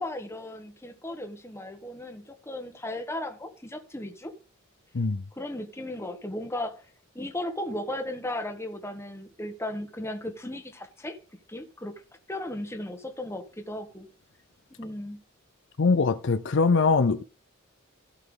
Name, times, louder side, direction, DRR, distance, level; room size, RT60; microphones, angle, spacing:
voice 1, 0.0-4.3 5.4-6.8 7.1-11.2 11.5-11.9 12.3-14.1 14.8-15.2, left 1 dB, 15° left, 1.4 m, -36 dB
voice 2, 15.8-17.2, left 4 dB, 60° left, 0.6 m, -22 dB
15.5 x 5.7 x 3.8 m
head